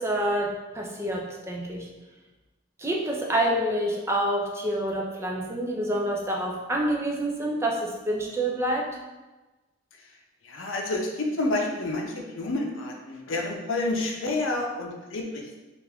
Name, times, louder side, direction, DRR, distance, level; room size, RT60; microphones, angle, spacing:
voice 1, 0.0-1.9 2.8-8.9, right 1 dB, 15° right, -1 dB, 0.4 m, -27 dB
voice 2, 10.4-15.6, left 2 dB, 90° left, 1 dB, 0.6 m, -29 dB
3.4 x 2.5 x 3.4 m, 1.1 s
head